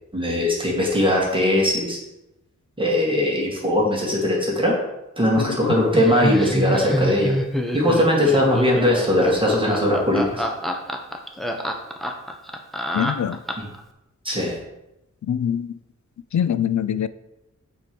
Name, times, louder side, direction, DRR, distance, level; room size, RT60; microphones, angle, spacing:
voice 1, 0.1-2.0 2.8-4.8 5.2-7.3 7.7-10.4 13.6-13.7 14.2-14.5, left 1 dB, 15° right, -4 dB, 2.3 m, -20 dB
voice 2, 5.4-5.8 12.9-13.4 15.2-15.8 16.3-17.1, left 9 dB, 70° left, 14 dB, 0.5 m, -24 dB
Laughter, 5.9-13.8, equal, ahead, 1.0 m, -26 dB
7.6 x 4.6 x 6.9 m, 0.92 s
wide cardioid pair, 105°, 30 cm